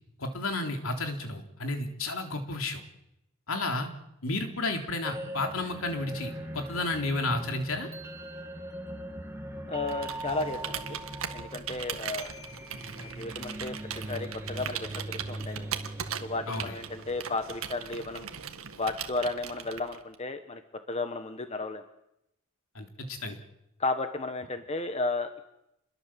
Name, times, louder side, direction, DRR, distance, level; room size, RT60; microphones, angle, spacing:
voice 1, 0.2-2.8 3.5-3.9 4.2-7.9 16.5-16.7 22.8-23.4, left 2 dB, 65° left, 4 dB, 3.7 m, -32 dB
sound 1, 5.0-18.0, right 1 dB, 10° right, 2.5 m, -41 dB
voice 2, 9.7-11.0 11.3-12.4 13.0-13.8 14.1-15.7 16.2-18.3 18.8-20.6 20.9-21.8 23.8-25.5, left 3 dB, 30° left, 8 dB, 1.3 m, -33 dB
Computer keyboard, 9.8-20.1, right 8 dB, 70° right, 1.9 m, -39 dB
28.5 x 22.0 x 7.7 m, 0.85 s
head